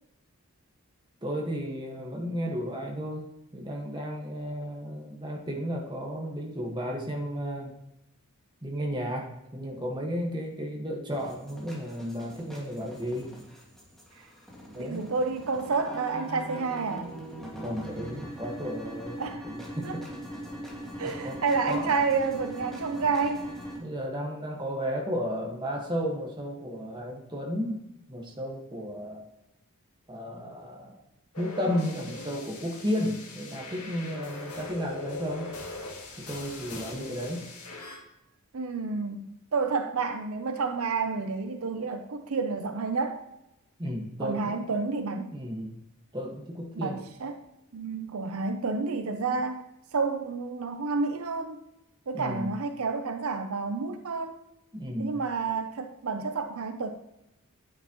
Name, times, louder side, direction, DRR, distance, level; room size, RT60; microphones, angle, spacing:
voice 1, 1.2-7.7 8.6-13.3 14.7-15.1 17.6-20.0 21.0-22.0 23.8-27.8 28.1-29.2 30.1-31.0 31.4-35.5 36.2-37.5 43.8-44.5 45.1-45.7 46.1-47.0 49.3-49.4 52.1-52.5 54.7-55.2, equal, 20° right, 0 dB, 1.6 m, -33 dB
sound 1, 11.1-23.8, equal, ahead, 2.0 m, -41 dB
voice 2, 14.8-17.1 19.2-19.5 19.8-19.9 21.0-23.5 38.5-39.3 39.5-43.2 44.2-45.3 46.8-47.4 47.7-49.6 49.9-51.6 52.1-54.4 55.0-56.9, right 4 dB, 70° right, 7 dB, 0.6 m, -30 dB
sound 2, 31.3-38.0, left 2 dB, 80° left, 2.0 m, -41 dB
9.3 x 9.3 x 3.0 m, 0.89 s
head